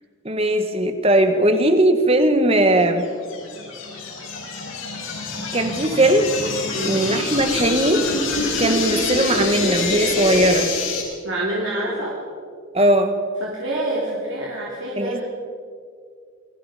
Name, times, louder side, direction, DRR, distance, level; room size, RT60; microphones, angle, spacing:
voice 1, 0.3-3.1 5.5-6.3 6.8-8.1 8.6-10.7 12.7-13.1 15.0-15.2, right 1 dB, 30° right, 7 dB, 1.8 m, -19 dB
sound 1, 3.0-11.0, left 3 dB, 75° left, 6.4 m, -25 dB
voice 2, 11.2-12.1 13.4-15.2, right 1 dB, 65° right, -4 dB, 3.6 m, -27 dB
28.5 x 21.5 x 5.2 m, 2.1 s
head